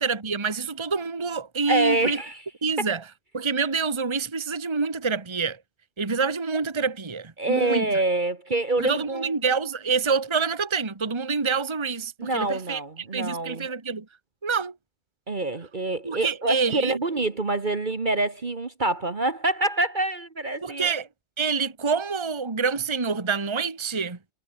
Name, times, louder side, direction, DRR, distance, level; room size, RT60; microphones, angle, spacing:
voice 1, 0.0-2.2 2.6-3.0 3.3-5.6 6.0-7.9 8.8-12.8 13.1-14.0 14.4-14.7 16.0-17.0 20.6-21.1 21.4-24.2, right 5 dB, 20° right, 1.4 m, -27 dB
voice 2, 1.7-2.4 2.8-2.9 7.4-9.4 12.2-13.7 15.3-20.9, right 2 dB, 35° right, 1.5 m, -26 dB
omnidirectional pair, 1.4 m